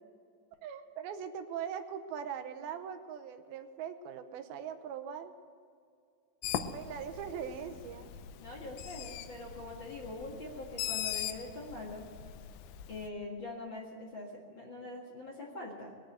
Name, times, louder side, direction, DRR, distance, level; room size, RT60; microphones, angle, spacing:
voice 1, 0.6-5.3 6.7-8.1, right 8 dB, 80° right, 8 dB, 2.7 m, -41 dB
Bird, 6.4-13.1, left 10 dB, 80° left, 2.4 m, -41 dB
voice 2, 8.4-12.0 12.9-15.9, left 2 dB, 40° left, -2 dB, 1.9 m, -43 dB
20.5 x 7.9 x 7.9 m, 2.3 s
omnidirectional pair, 4.3 m